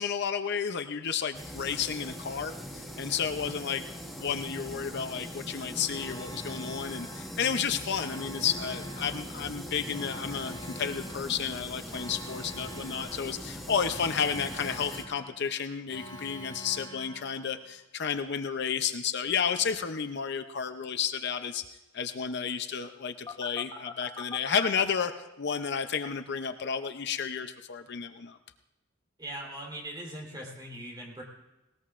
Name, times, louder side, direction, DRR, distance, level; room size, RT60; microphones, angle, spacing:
voice 1, 0.0-3.8 4.2-21.6 21.9-28.4, left 7 dB, 55° left, 9 dB, 0.6 m, -32 dB
sound 1, 1.3-15.0, equal, ahead, 1.5 m, -41 dB
Alarm, 5.9-17.8 23.3-24.8, left 1 dB, 20° left, 0.9 m, -45 dB
voice 2, 29.2-31.2, right 1 dB, 20° right, -2 dB, 3.6 m, -40 dB
19.5 x 18.5 x 2.5 m, 1.0 s
head